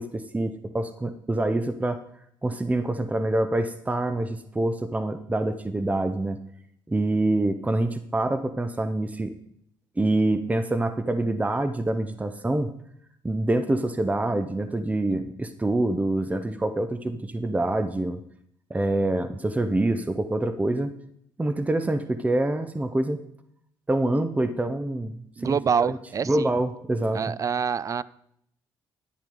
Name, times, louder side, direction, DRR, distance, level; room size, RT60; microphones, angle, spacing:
voice 1, 0.0-2.0 2.4-6.4 6.9-9.3 10.0-12.7 13.2-18.2 18.7-20.9 21.4-23.2 23.9-26.0 26.2-27.3, right 2 dB, 15° right, 10 dB, 0.8 m, -26 dB
voice 2, 25.4-26.5 27.1-28.0, right 6 dB, 40° right, 20 dB, 0.4 m, -26 dB
10.5 x 10.5 x 3.9 m, 0.70 s
supercardioid pair, 70°, 9 cm